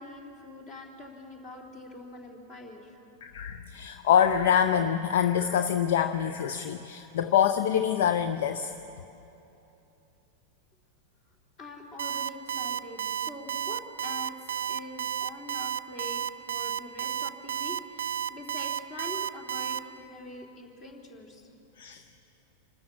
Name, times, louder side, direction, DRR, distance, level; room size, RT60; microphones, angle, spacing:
voice 1, 0.0-3.0 11.6-14.4 14.7-16.2 16.5-21.5, left 2 dB, 35° left, 1 dB, 3.5 m, -44 dB
voice 2, 3.2-8.7 21.8-22.0, left 9 dB, 55° left, 9 dB, 0.6 m, -25 dB
Alarm, 12.0-19.8, right 9 dB, 65° right, 0.5 m, -31 dB
27.0 x 13.0 x 7.4 m, 2.9 s
figure-of-eight pair, 90°, 0 cm